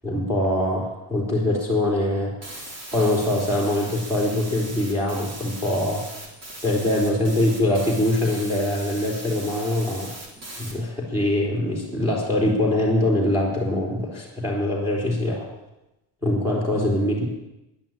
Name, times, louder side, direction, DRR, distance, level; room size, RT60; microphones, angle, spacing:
voice 1, 0.0-6.0 6.6-10.1 10.6-15.3 16.2-17.3, left 1 dB, 5° right, -2 dB, 3.4 m, -23 dB
sound 1, 2.4-10.7, right 1 dB, 30° right, 3.7 m, -39 dB
11.0 x 10.5 x 8.9 m, 0.94 s
cardioid pair, 130°, 48 cm